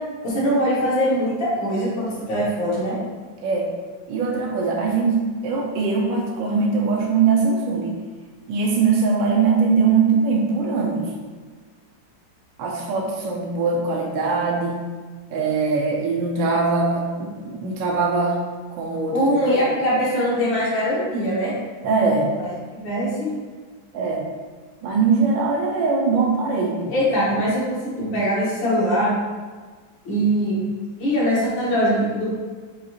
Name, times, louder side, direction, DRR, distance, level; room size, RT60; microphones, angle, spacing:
voice 1, 0.2-2.9 19.1-21.5 22.7-23.3 26.9-29.1 30.1-30.6 31.0-32.3, equal, 90° left, -7 dB, 2.1 m, -22 dB
voice 2, 4.1-8.0 8.5-11.1 12.6-14.9 15.3-18.4 18.7-19.1 19.6-19.7 21.8-22.3 23.9-24.2 24.8-26.9, right 4 dB, 85° right, -2 dB, 1.3 m, -21 dB
6.3 x 2.4 x 2.8 m, 1.5 s
omnidirectional pair, 2.0 m